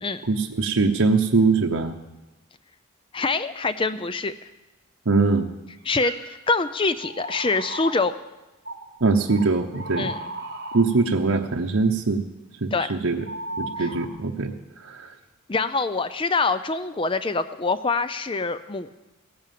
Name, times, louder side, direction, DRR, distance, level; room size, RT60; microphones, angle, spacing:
voice 1, 0.3-1.9 5.1-5.5 9.0-10.1 10.7-12.2 12.6-13.2 13.6-14.5 14.8-15.1, right 3 dB, 85° right, 2 dB, 0.9 m, -22 dB
voice 2, 3.1-4.3 5.8-8.1 10.0-10.2 12.7-12.9 13.8-13.9 15.5-19.0, left 3 dB, 25° left, 12 dB, 0.4 m, -25 dB
sound 1, 5.8-6.2 7.0-8.0 8.6-8.8 9.3-10.9 13.2-14.1, right 1 dB, 50° right, 1.8 m, -35 dB
16.5 x 10.5 x 7.5 m, 1.1 s
head